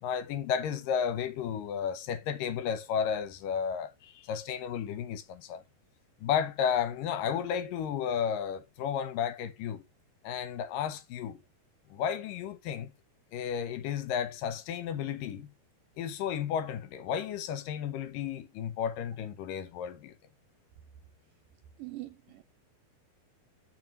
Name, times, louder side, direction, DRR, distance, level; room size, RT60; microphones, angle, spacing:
voice 1, 0.0-5.6 6.2-9.8 10.2-11.4 11.9-12.9 13.3-15.5 16.0-20.1, left 8 dB, 70° left, 2.3 m, -33 dB
voice 2, 21.8-22.4, right 17 dB, 75° right, 2.1 m, -42 dB
7.6 x 5.8 x 5.3 m
omnidirectional pair, 4.5 m